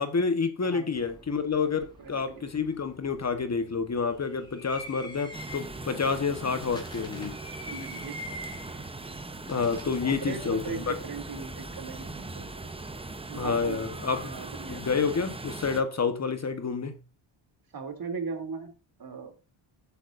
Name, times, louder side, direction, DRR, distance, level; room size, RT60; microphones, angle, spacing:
voice 1, 0.0-7.3 9.5-10.9 13.3-14.3 14.7-17.0, left 5 dB, 35° left, 1.3 m, -29 dB
voice 2, 0.6-1.1 2.0-2.4 7.7-8.4 10.0-12.7 13.3-14.0 14.2-14.8 17.7-18.7 19.0-19.3, right 5 dB, 45° right, 3.1 m, -38 dB
sound 1, 0.9-14.0, left 1 dB, 10° left, 4.7 m, -47 dB
sound 2, 5.3-15.8, right 2 dB, 10° right, 0.8 m, -40 dB
15.0 x 8.2 x 2.6 m
cardioid pair, 110°, 49 cm